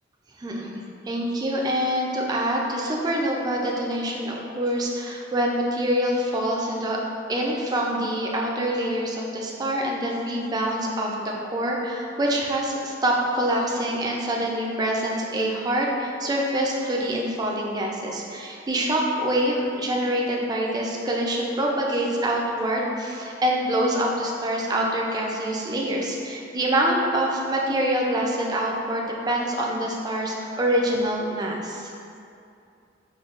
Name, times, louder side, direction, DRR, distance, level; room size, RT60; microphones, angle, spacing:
voice 1, 0.4-7.0 7.3-31.9, right 1 dB, 20° right, -1 dB, 0.3 m, -25 dB
5.0 x 2.2 x 2.4 m, 2.5 s
head